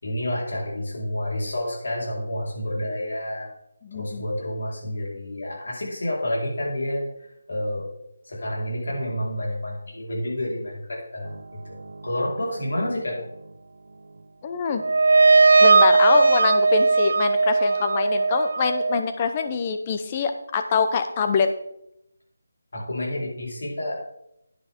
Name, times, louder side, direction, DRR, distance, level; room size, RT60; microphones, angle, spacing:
voice 1, 0.0-3.5 3.9-7.0 7.5-7.9 8.2-11.8 12.0-13.2 22.7-24.0, left 1 dB, 70° left, -3 dB, 4.4 m, -29 dB
voice 2, 3.8-4.2 14.4-14.8 15.6-21.5, left 5 dB, 25° left, 7 dB, 0.8 m, -24 dB
sound 1, 14.8-19.0, right 3 dB, 65° right, 0.6 m, -18 dB
10.0 x 8.8 x 3.7 m, 0.80 s
figure-of-eight pair, 170°, 0 cm